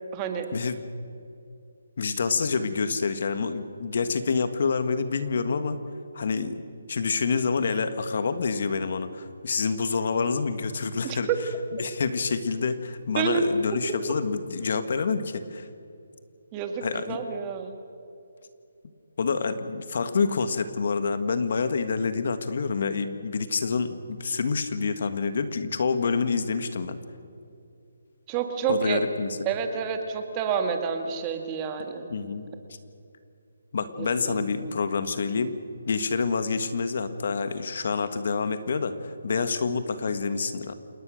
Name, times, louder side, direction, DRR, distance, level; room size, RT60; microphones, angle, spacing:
voice 1, 0.1-0.5 11.0-11.4 13.2-13.4 16.5-17.7 28.3-29.0 29.5-32.1 34.0-34.7, right 7 dB, 20° right, 6 dB, 2.0 m, -29 dB
voice 2, 2.0-5.8 6.1-6.6 6.9-11.3 11.8-15.7 16.8-17.2 19.2-27.0 28.7-29.5 32.1-32.4 33.7-35.5 35.9-40.7, left 5 dB, 55° left, 10 dB, 1.6 m, -27 dB
28.0 x 19.0 x 6.5 m, 2.6 s
hypercardioid pair, 160°, 0 cm